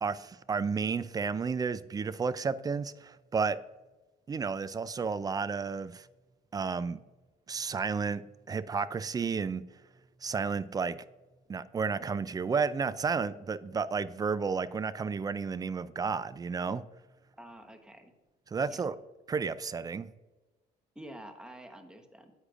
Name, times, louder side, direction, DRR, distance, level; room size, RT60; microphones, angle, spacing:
voice 1, 0.0-3.6 4.3-6.1 6.5-7.0 7.5-8.2 8.5-9.6 10.2-11.0 11.5-16.8 18.5-19.0 19.3-20.1, right 5 dB, 20° right, 16 dB, 0.3 m, -32 dB
voice 2, 17.4-18.1 18.7-18.8 20.9-22.3, right 1 dB, 5° right, 6 dB, 1.1 m, -48 dB
9.9 x 8.1 x 2.5 m, 1.2 s
cardioid pair, 110°, 17 cm